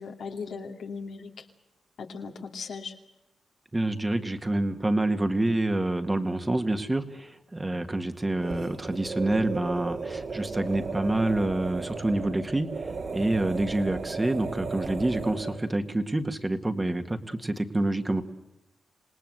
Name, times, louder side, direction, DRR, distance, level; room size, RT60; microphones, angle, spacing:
voice 1, 0.0-1.4 2.0-2.9, left 5 dB, 80° left, 3 dB, 2.6 m, -38 dB
voice 2, 3.7-18.2, right 2 dB, 20° right, 7 dB, 1.9 m, -27 dB
sound 1, 8.3-15.7, right 4 dB, 60° right, 3.3 m, -35 dB
27.0 x 18.5 x 7.9 m, 0.94 s
cardioid pair, 70°, 0 cm